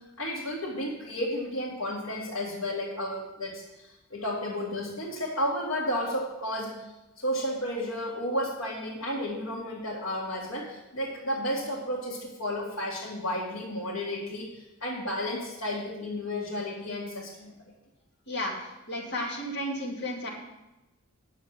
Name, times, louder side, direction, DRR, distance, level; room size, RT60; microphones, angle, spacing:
voice 1, 0.2-6.9 7.2-17.5, equal, 90° left, -5 dB, 2.0 m, -32 dB
voice 2, 18.9-20.3, left 1 dB, 55° left, -2 dB, 2.4 m, -32 dB
9.3 x 7.4 x 6.1 m, 0.98 s
head